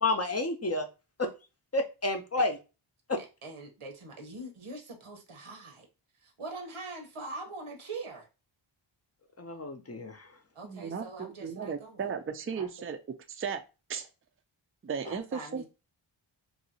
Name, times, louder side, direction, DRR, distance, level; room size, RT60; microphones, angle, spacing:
voice 1, 0.0-0.9 1.2-1.3 1.7-2.6 3.1-3.2 9.4-10.4, left 2 dB, 30° left, 0.6 m, -30 dB
voice 2, 3.4-5.9 6.2-8.3 10.5-12.1 12.5-12.7 15.0-15.6, right 2 dB, 90° right, 1.0 m, -43 dB
voice 3, 10.6-13.0 13.3-13.6 13.9-14.1 14.8-15.6, right 6 dB, 30° right, 0.4 m, -35 dB
3.0 x 2.6 x 2.7 m
wide cardioid pair, 65°, 49 cm